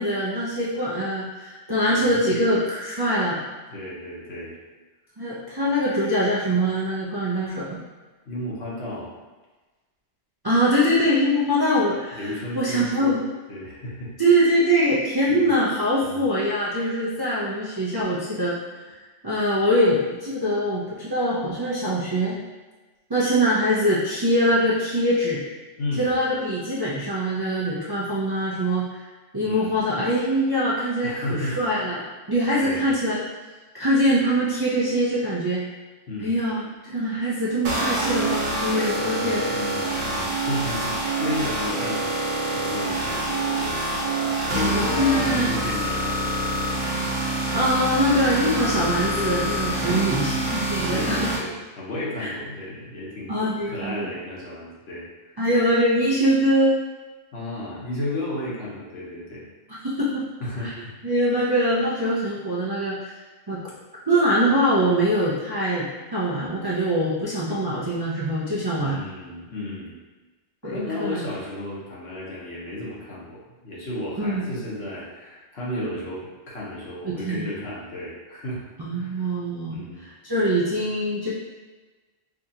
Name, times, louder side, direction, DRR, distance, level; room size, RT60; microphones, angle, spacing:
voice 1, 0.0-3.4 5.2-7.8 10.4-12.2 12.5-13.2 14.2-18.6 19.2-22.4 23.1-25.4 26.0-28.9 29.3-32.0 32.3-33.2 33.7-35.6 36.2-39.4 44.7-45.5 47.5-51.3 52.2-52.3 53.3-54.1 55.4-56.8 59.8-60.3 61.0-63.1 63.5-63.6 64.1-69.0 70.6-71.2 74.2-74.4 77.1-77.4 78.8-81.3, equal, 35° right, -8 dB, 0.4 m, -23 dB
voice 2, 1.9-2.4 3.7-4.6 8.2-9.1 12.2-13.1 13.5-14.1 15.3-15.5 16.0-16.2 25.8-26.2 29.4-29.8 31.0-31.6 32.6-32.9 36.1-36.4 39.0-43.8 44.5-46.6 49.8-50.5 50.9-53.3 53.7-55.5 57.3-59.4 60.4-61.1 68.8-70.0 70.6-79.3 79.7-80.0, left 1 dB, 65° left, -6 dB, 1.2 m, -33 dB
sound 1, 37.6-51.4, right 1 dB, 85° right, 1.2 m, -26 dB
4.7 x 2.4 x 2.7 m, 1.2 s
omnidirectional pair, 1.2 m